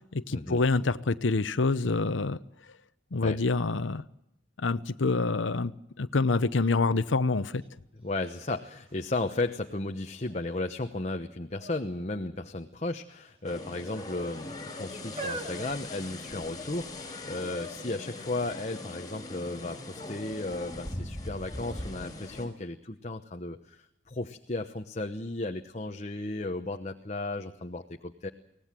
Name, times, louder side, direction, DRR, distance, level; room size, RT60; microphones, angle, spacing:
voice 1, 0.1-2.4 3.1-4.0 4.6-5.7 6.0-7.6, left 3 dB, 80° left, 13 dB, 0.8 m, -26 dB
sound 1, 7.6-7.7 8.1-9.6 10.2-10.7 11.6-11.9 12.2-12.4 13.2-13.9 14.6-16.6 17.4-17.5, right 2 dB, 30° right, 2.4 m, -43 dB
voice 2, 8.0-28.3, left 2 dB, 35° left, 5 dB, 1.0 m, -35 dB
sound 2, 13.4-22.5, left 2 dB, 20° left, 4.7 m, -40 dB
24.0 x 18.5 x 7.5 m, 0.83 s
head